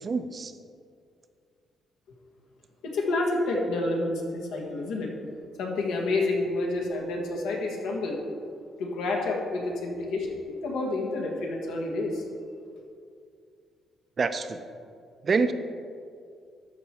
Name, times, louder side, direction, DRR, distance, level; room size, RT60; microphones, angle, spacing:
voice 1, 0.0-0.5 14.2-14.6 15.2-15.5, right 4 dB, 40° right, 10 dB, 0.5 m, -26 dB
voice 2, 2.8-5.1 5.6-8.2 8.8-10.3 10.6-12.2, left 2 dB, 85° left, 0 dB, 1.5 m, -29 dB
12.5 x 4.6 x 4.3 m, 2.3 s
cardioid pair, 90°, 0 cm